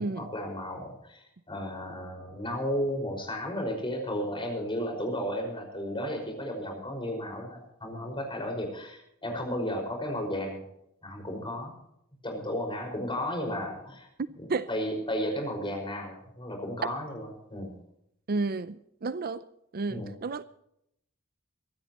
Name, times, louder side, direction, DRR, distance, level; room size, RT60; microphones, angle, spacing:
voice 1, 0.0-10.6 11.0-11.7 12.2-14.1 14.4-17.7 19.9-20.1, equal, 25° left, 5.4 m, -34 dB
voice 2, 18.3-19.4 19.7-20.4, right 3 dB, 45° right, 0.5 m, -31 dB
24.5 x 13.0 x 3.0 m
head